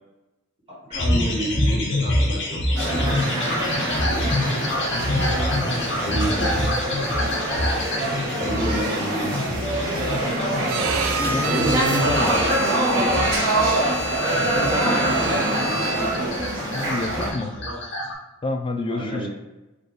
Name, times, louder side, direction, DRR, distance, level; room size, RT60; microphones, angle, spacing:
sound 1, 0.9-18.1, left 1 dB, 55° left, 0.8 m, -27 dB
voice 1, 0.9-3.0 6.0-6.6 8.4-10.1 11.3-13.1 14.3-16.3 17.5-17.8 18.9-19.3, right 1 dB, 25° right, -7 dB, 1.2 m, -29 dB
sound 2, 2.7-17.3, right 1 dB, 60° right, 1.0 m, -25 dB
voice 2, 5.9-6.5 9.5-9.6 11.2-12.5 16.7-17.5 18.4-19.3, left 2 dB, 25° left, 5 dB, 0.3 m, -29 dB
Bowed string instrument, 10.7-16.3, right 3 dB, 85° right, 0.4 m, -29 dB
3.5 x 2.3 x 3.8 m, 1.0 s
head